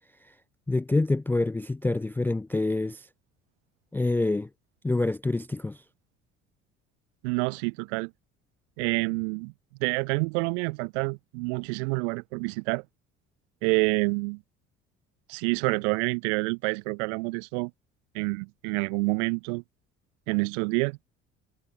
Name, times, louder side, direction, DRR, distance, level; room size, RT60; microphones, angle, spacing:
voice 1, 0.7-3.1 3.9-4.5 4.8-5.8, left 2 dB, 5° left, 0.4 m, -26 dB
voice 2, 7.2-8.1 8.8-9.5 9.8-12.8 13.6-14.4 15.3-17.7 18.1-19.6 20.3-21.0, right 32 dB, 65° right, 1.7 m, -28 dB
figure-of-eight pair, 55°, 38 cm